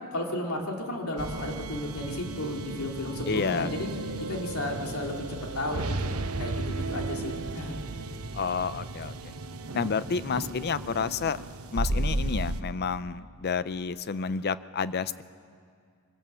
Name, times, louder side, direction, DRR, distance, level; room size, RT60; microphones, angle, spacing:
voice 1, 0.1-3.9 4.3-7.8, left 1 dB, 85° left, 1 dB, 2.9 m, -33 dB
sound 1, 1.2-12.6, right 2 dB, 75° right, 0.9 m, -34 dB
voice 2, 3.3-3.7 8.3-9.3 9.7-11.4 11.7-15.2, left 5 dB, 50° left, 15 dB, 0.5 m, -30 dB
22.5 x 16.5 x 7.6 m, 2.2 s
head